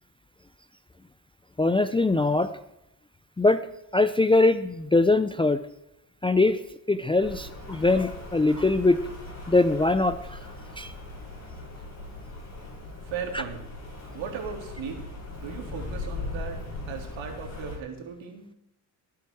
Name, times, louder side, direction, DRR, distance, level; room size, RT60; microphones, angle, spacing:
voice 1, 1.6-2.5 3.4-3.7 3.9-5.6 6.2-6.6 6.9-9.0 9.5-10.4 10.8-10.9 13.3-13.4, left 2 dB, 10° left, 10 dB, 0.5 m, -22 dB
Rain, 7.2-17.8, left 2 dB, 30° left, 6.9 m, -39 dB
voice 2, 13.0-13.7 14.1-15.0 15.4-16.6 16.9-18.5, right 6 dB, 70° right, 3 dB, 3.4 m, -37 dB
19.5 x 8.6 x 4.7 m, 0.85 s
cardioid pair, 100°, 49 cm